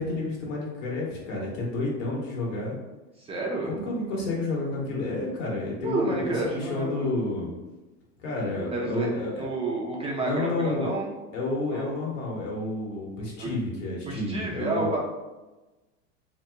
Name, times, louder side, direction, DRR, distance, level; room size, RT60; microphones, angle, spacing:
voice 1, 0.0-2.8 3.7-7.5 8.2-9.5 10.2-10.9 11.3-15.0, left 2 dB, 80° left, -3 dB, 1.3 m, -30 dB
voice 2, 3.2-3.7 5.8-7.1 8.7-9.1 9.4-11.1 11.7-12.0 13.4-13.5 14.1-15.0, right 2 dB, 15° right, -2 dB, 0.3 m, -30 dB
2.8 x 2.2 x 3.3 m, 1.1 s
hypercardioid pair, 115°, 37 cm